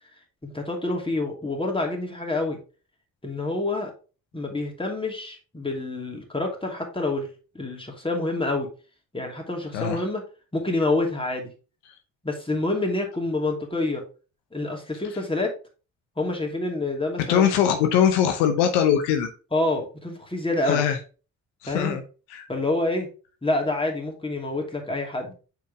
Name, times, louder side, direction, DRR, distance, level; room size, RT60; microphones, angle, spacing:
voice 1, 0.4-2.6 3.2-3.9 4.3-7.3 7.5-8.7 9.1-10.2 10.5-11.5 12.2-14.0 14.5-15.5 16.2-17.5 19.5-20.8 21.7-22.0 22.5-23.1 23.4-25.3, left 2 dB, 15° left, 1 dB, 2.7 m, -27 dB
voice 2, 17.3-19.3 20.6-21.0 21.6-22.0 22.3-22.5, left 9 dB, 80° left, 6 dB, 1.0 m, -21 dB
6.5 x 5.1 x 3.5 m, 0.34 s
hypercardioid pair, 50°, 40 cm